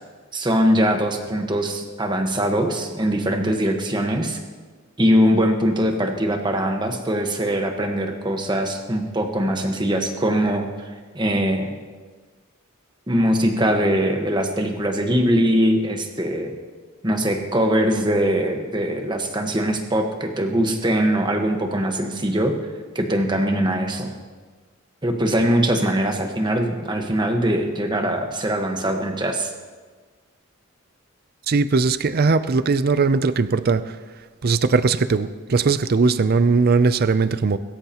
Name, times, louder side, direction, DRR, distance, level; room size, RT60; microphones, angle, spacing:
voice 1, 0.3-4.4 5.0-10.7 11.1-11.7 13.1-16.5 17.0-22.6 22.9-24.1 25.0-29.5, equal, 20° right, 4 dB, 1.3 m, -22 dB
voice 2, 31.5-34.0 34.4-37.6, right 4 dB, 45° right, 13 dB, 0.5 m, -19 dB
22.0 x 13.5 x 3.0 m, 1.4 s
head